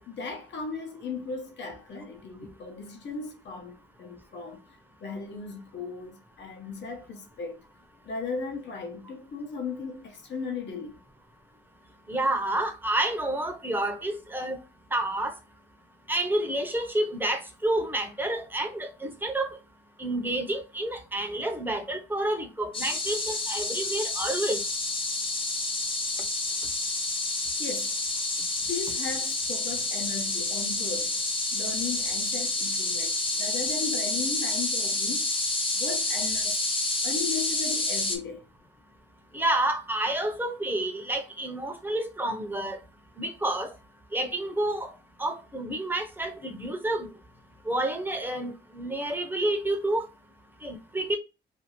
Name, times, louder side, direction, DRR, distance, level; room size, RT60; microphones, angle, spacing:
voice 1, 0.1-7.6 8.0-11.0 27.6-28.0 28.7-31.2 31.5-35.3 35.7-36.6 37.0-38.4, left 4 dB, 65° left, 0.9 m, -36 dB
voice 2, 12.1-14.6 14.9-15.3 16.1-19.6 20.0-24.6 39.3-42.8 43.2-43.7 44.1-44.9 45.2-47.1 47.7-50.0 50.6-51.2, right 1 dB, 10° right, 0.7 m, -29 dB
sound 1, 22.7-38.2, left 2 dB, 25° left, 0.7 m, -29 dB
2.6 x 2.6 x 2.9 m
cardioid pair, 90°, 20 cm